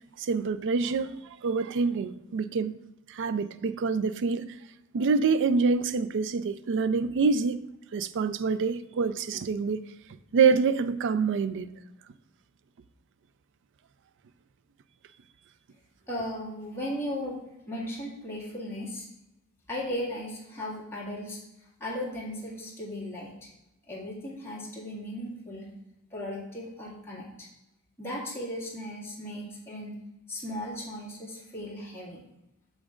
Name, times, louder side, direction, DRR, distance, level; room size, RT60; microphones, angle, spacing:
voice 1, 0.2-1.1 1.4-2.7 3.1-4.5 4.9-9.8 10.3-11.7, right 5 dB, 55° right, 0.4 m, -26 dB
voice 2, 16.1-17.4 17.7-19.1 19.7-21.4 21.8-23.5 23.9-25.7 26.1-27.5 28.0-29.9 30.3-32.2, left 1 dB, 10° left, 1.9 m, -36 dB
8.6 x 6.3 x 2.4 m
head